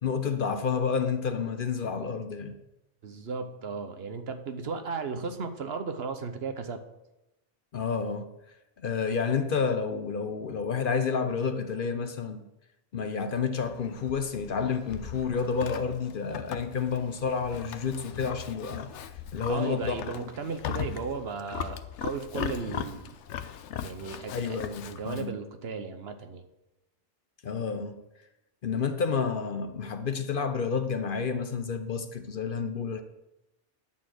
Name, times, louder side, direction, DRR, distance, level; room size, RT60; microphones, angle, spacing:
voice 1, 0.0-2.5 7.7-8.3 8.8-12.4 12.9-18.9 19.3-20.0 24.3-25.3 27.4-27.9 28.6-33.0, left 5 dB, 55° left, 8 dB, 0.8 m, -30 dB
voice 2, 3.0-6.8 19.5-23.2 23.8-26.4, right 5 dB, 65° right, 8 dB, 1.1 m, -35 dB
Livestock farm animals working animals, 13.6-25.3, left 9 dB, 85° left, 0.9 m, -39 dB
11.0 x 4.3 x 7.7 m, 0.94 s
omnidirectional pair, 1.2 m